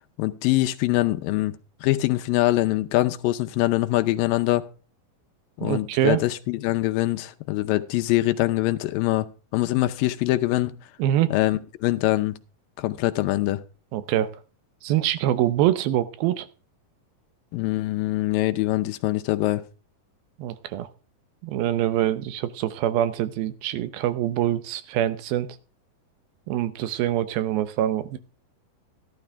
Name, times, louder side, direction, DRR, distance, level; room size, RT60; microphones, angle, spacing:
voice 1, 0.2-1.5 1.8-4.6 5.6-10.8 11.3-12.3 12.8-13.6 17.5-19.6, left 17 dB, 80° left, 2.3 m, -23 dB
voice 2, 5.6-6.2 11.0-11.3 13.9-14.3 14.8-16.5 20.4-20.9 21.4-25.5 26.5-28.2, right 12 dB, 85° right, 2.7 m, -24 dB
13.0 x 12.0 x 3.4 m
omnidirectional pair, 4.1 m